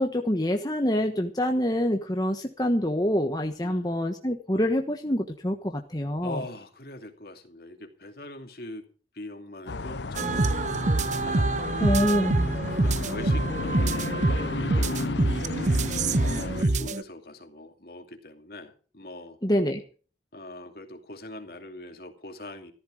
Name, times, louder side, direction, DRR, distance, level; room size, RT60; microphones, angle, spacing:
voice 1, 0.0-6.4 11.8-12.7 19.4-19.8, equal, 20° left, 4 dB, 1.2 m, -26 dB
voice 2, 3.6-3.9 6.2-8.9 9.1-10.9 11.2-11.5 12.4-15.1 16.2-19.4 20.3-22.7, left 1 dB, 55° left, 5 dB, 2.6 m, -42 dB
sound 1, 9.7-16.6, left 3 dB, 75° left, 0.7 m, -33 dB
sound 2, 10.1-17.0, right 2 dB, 40° right, 0.7 m, -26 dB
14.5 x 14.0 x 5.1 m, 0.39 s
head